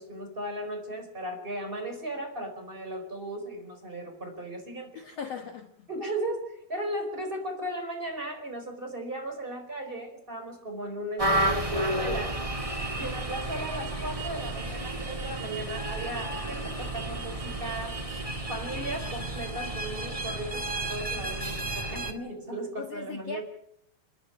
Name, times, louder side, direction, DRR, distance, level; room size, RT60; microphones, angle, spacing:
voice 1, 0.0-5.0 5.9-12.4 13.0-18.0 18.5-23.4, right 1 dB, 15° right, 4 dB, 4.6 m, -36 dB
voice 2, 4.9-5.9 22.8-23.4, left 6 dB, 60° left, 6 dB, 1.7 m, -39 dB
sound 1, 11.2-22.1, right 1 dB, 50° right, 0.4 m, -32 dB
sound 2, 12.5-21.6, left 3 dB, 25° left, 4.3 m, -56 dB
30.0 x 10.5 x 8.8 m, 0.73 s
omnidirectional pair, 4.6 m